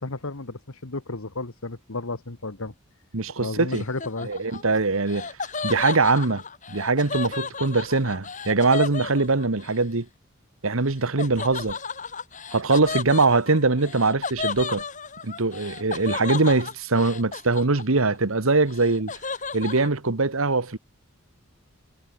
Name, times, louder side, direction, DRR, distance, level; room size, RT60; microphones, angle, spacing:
voice 1, 0.0-2.7 3.4-4.3, left 2 dB, 80° left, 1.7 m, -33 dB
voice 2, 3.1-3.8 4.2-5.3 5.6-6.4 6.7-10.1 10.6-11.8 12.5-14.8 15.2-19.1 19.5-20.8, right 3 dB, 75° right, 1.4 m, -22 dB
Laughter, 3.7-9.8 11.2-18.2 18.5-19.9, left 4 dB, 35° left, 3.5 m, -33 dB
head